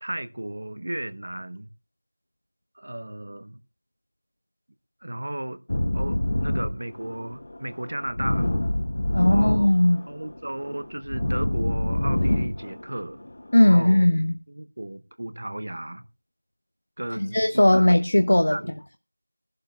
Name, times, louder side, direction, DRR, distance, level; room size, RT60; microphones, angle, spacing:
voice 1, 0.0-1.7 2.8-3.6 5.0-5.6 5.9-8.5 8.9-9.7 10.1-13.2 13.5-14.1 14.5-16.1 17.0-17.9 18.5-18.8, right 1 dB, 40° right, 0.8 m, -34 dB
sound 1, 5.7-13.7, left 1 dB, 35° left, 1.0 m, -27 dB
voice 2, 9.1-10.0 13.5-14.3 17.2-18.6, left 1 dB, 60° left, 0.8 m, -18 dB
20.5 x 11.5 x 2.3 m
figure-of-eight pair, 180°, 0 cm